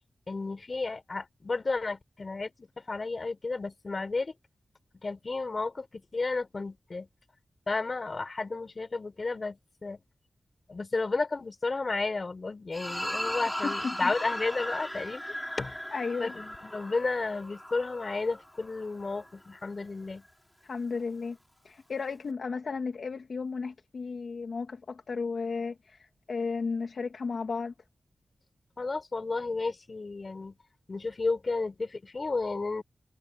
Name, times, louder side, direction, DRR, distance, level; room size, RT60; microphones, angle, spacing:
voice 1, 0.3-4.3 5.0-7.1 7.7-10.0 10.7-15.2 15.6-15.8 16.2-20.2 28.8-30.5 30.9-32.8, left 3 dB, 45° left, 4.2 m, -32 dB
sound 1, 12.7-19.3, equal, 5° left, 2.8 m, -37 dB
voice 2, 13.6-14.1 15.9-16.3 20.6-21.4 21.6-27.7, left 4 dB, 70° left, 2.1 m, -34 dB
wide cardioid pair, 80°, 0 cm